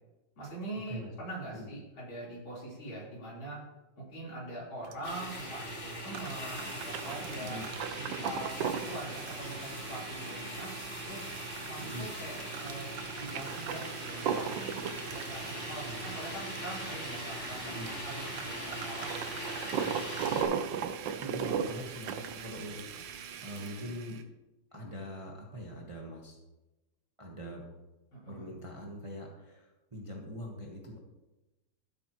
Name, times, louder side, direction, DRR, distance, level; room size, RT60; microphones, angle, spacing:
voice 1, 0.4-3.6 4.0-7.6 7.9-11.3 11.6-19.1 28.1-28.5, right 1 dB, 70° left, -6 dB, 4.8 m, -43 dB
sound 1, 4.8-23.3, right 7 dB, 70° right, 1.3 m, -38 dB
sound 2, 5.0-20.4, equal, 35° left, 2.6 m, -41 dB
Domestic sounds home sounds, 6.6-24.2, right 8 dB, 85° right, 1.7 m, -46 dB
voice 2, 15.6-16.1 17.6-17.9 21.2-24.2 24.7-26.4 27.2-27.7 28.3-31.0, equal, 20° right, -1 dB, 1.1 m, -43 dB
14.0 x 8.4 x 3.1 m, 1.0 s
omnidirectional pair, 2.3 m